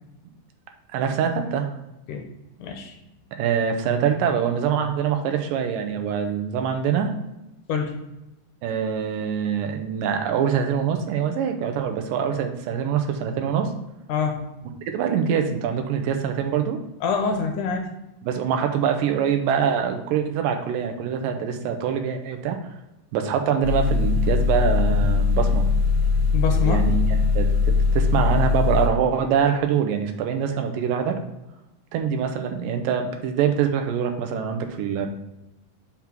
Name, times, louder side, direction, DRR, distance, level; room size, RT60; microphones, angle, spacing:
voice 1, 0.9-1.7 3.3-7.1 8.6-13.7 14.9-16.8 18.2-22.6 23.1-25.7 26.6-27.5 27.9-31.2 31.9-35.1, right 7 dB, 85° right, 5 dB, 2.2 m, -24 dB
voice 2, 2.6-2.9 7.7-7.9 14.1-14.4 17.0-17.9 26.3-26.8, left 5 dB, 75° left, 3 dB, 2.1 m, -25 dB
sound 1, 23.6-28.9, left 4 dB, 15° left, 1.3 m, -20 dB
5.9 x 3.6 x 5.8 m, 0.95 s
omnidirectional pair, 4.0 m